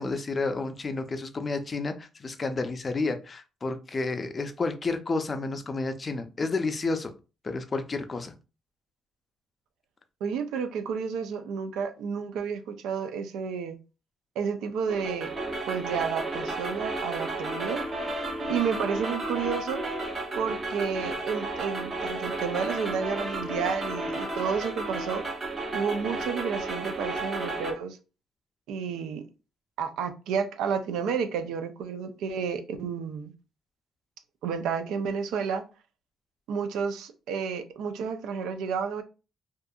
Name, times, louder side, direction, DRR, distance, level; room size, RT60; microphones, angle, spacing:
voice 1, 0.0-7.1 7.4-8.3, left 3 dB, 35° left, 0.4 m, -30 dB
voice 2, 10.2-13.8 14.4-15.3 15.7-17.8 18.5-19.8 20.4-25.2 25.7-28.0 28.7-29.2 29.8-33.3 34.4-35.6 36.5-39.0, right 6 dB, 90° right, 0.4 m, -31 dB
sound 1, 14.9-27.7, right 2 dB, 40° right, 0.8 m, -33 dB
2.6 x 2.4 x 2.3 m
cardioid pair, 90°, 0 cm